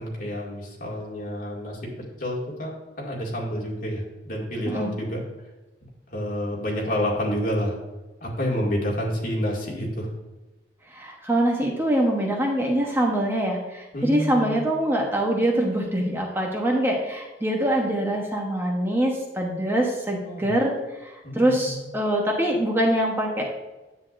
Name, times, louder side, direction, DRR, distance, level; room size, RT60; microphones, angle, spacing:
voice 1, 0.0-1.9 2.2-2.7 3.0-5.2 6.1-7.7 8.2-10.1 13.9-14.7 20.2-20.5 21.2-21.9, equal, 50° left, -3 dB, 2.2 m, -29 dB
voice 2, 10.9-20.7 21.0-23.5, right 1 dB, 15° right, 0 dB, 1.0 m, -24 dB
9.8 x 8.2 x 2.6 m, 1.1 s
head